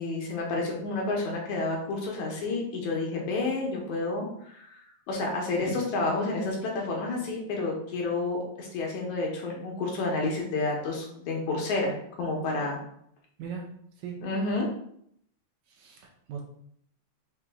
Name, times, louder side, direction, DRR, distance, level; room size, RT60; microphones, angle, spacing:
voice 1, 0.0-11.9 12.2-12.8 14.2-14.7, left 3 dB, 70° left, -1 dB, 2.0 m, -30 dB
voice 2, 15.7-16.4, right 7 dB, 75° right, 1 dB, 1.9 m, -39 dB
5.9 x 2.5 x 3.4 m, 0.70 s
omnidirectional pair, 3.7 m